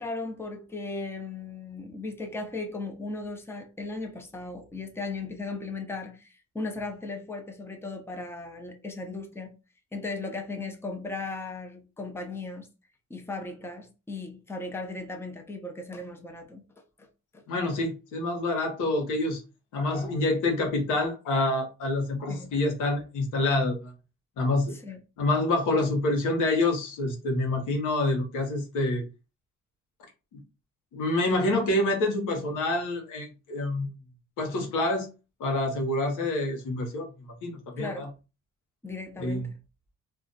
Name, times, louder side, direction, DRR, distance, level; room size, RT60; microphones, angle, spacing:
voice 1, 0.0-9.6 9.9-12.7 13.1-16.6 17.0-17.1 17.3-17.4 22.3-22.5 24.7-25.0 37.8-38.1 38.8-39.5, left 3 dB, 10° left, 0.6 m, -37 dB
voice 2, 17.5-19.4 19.7-23.9 24.4-24.8 25.2-29.0 30.3-30.4 30.9-33.9 34.4-35.1 35.4-38.1 39.2-39.5, left 2 dB, 90° left, 1.0 m, -27 dB
2.4 x 2.2 x 3.9 m
cardioid pair, 90°, 30 cm